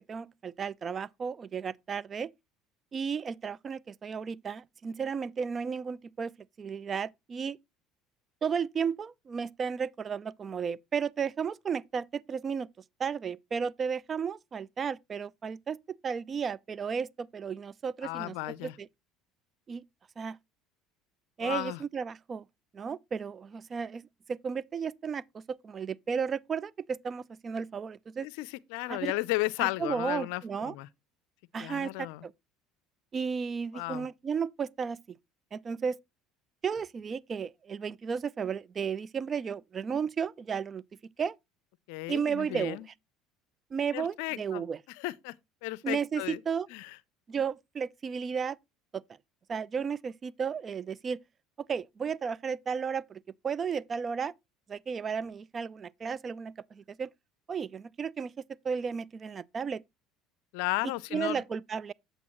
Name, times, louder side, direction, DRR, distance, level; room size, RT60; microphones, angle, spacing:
voice 1, 0.1-2.3 2.9-7.6 8.4-12.7 13.0-18.4 18.6-18.9 19.7-19.8 20.2-20.4 21.4-22.4 22.7-28.3 28.9-29.1 29.6-30.7 31.5-32.3 33.1-35.0 35.5-36.0 36.6-40.8 41.2-41.4 42.1-42.8 43.7-44.8 45.8-46.7 47.3-48.6 48.9-49.0 49.5-51.2 51.7-54.3 54.7-57.1 57.5-58.3 58.6-59.8 61.1-61.9, right 6 dB, 35° right, 0.3 m, -33 dB
voice 2, 18.0-18.8 21.4-21.8 28.2-30.9 31.6-32.3 33.7-34.1 41.9-42.8 43.9-44.6 45.0-45.3 45.6-46.4 46.7-47.0 60.5-61.4, left 20 dB, 75° left, 0.4 m, -34 dB
8.3 x 7.8 x 3.0 m
hypercardioid pair, 75°, 0 cm